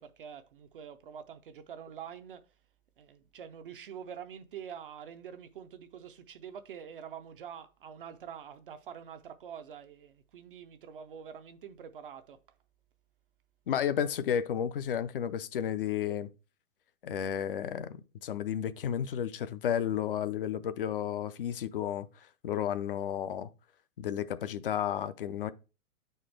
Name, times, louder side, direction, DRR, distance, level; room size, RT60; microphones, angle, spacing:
voice 1, 0.0-2.4 3.0-12.4, right 8 dB, 40° right, 0.5 m, -46 dB
voice 2, 13.7-16.3 17.0-22.1 22.4-23.5 24.0-25.5, left 9 dB, 40° left, 0.5 m, -32 dB
8.7 x 4.4 x 3.2 m
figure-of-eight pair, 125°, 42 cm